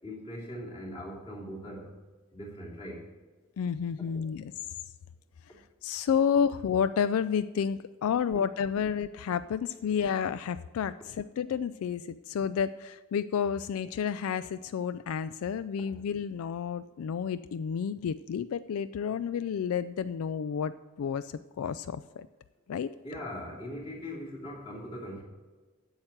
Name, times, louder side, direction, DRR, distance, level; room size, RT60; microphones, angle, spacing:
voice 1, 0.0-1.9 2.3-3.1 4.1-4.2 23.0-25.2, equal, 25° left, -4 dB, 2.8 m, -40 dB
voice 2, 3.6-4.5 5.8-22.3 22.7-22.9, left 7 dB, 80° left, 14 dB, 0.3 m, -30 dB
8.9 x 7.3 x 7.9 m, 1.3 s
head